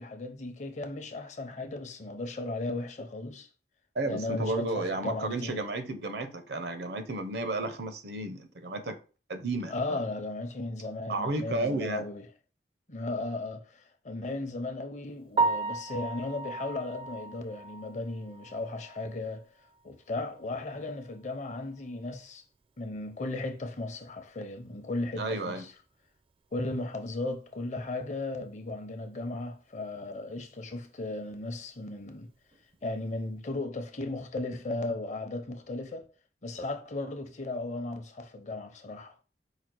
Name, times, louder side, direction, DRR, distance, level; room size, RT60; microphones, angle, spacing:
voice 1, 0.0-3.5 4.1-5.6 9.7-12.2 12.9-19.5 19.8-22.4 22.8-25.7 26.5-32.3 32.8-36.1 36.4-39.1, left 2 dB, 45° left, 0.6 m, -36 dB
voice 2, 3.9-9.0 9.3-10.0 11.1-12.0 25.2-25.6, right 2 dB, 65° right, 0.7 m, -32 dB
Piano, 15.3-19.3 19.7-19.8 20.3-20.4 20.7-20.8 23.9-24.0 32.5-32.8, right 3 dB, 30° right, 0.4 m, -33 dB
5.0 x 2.4 x 4.5 m
head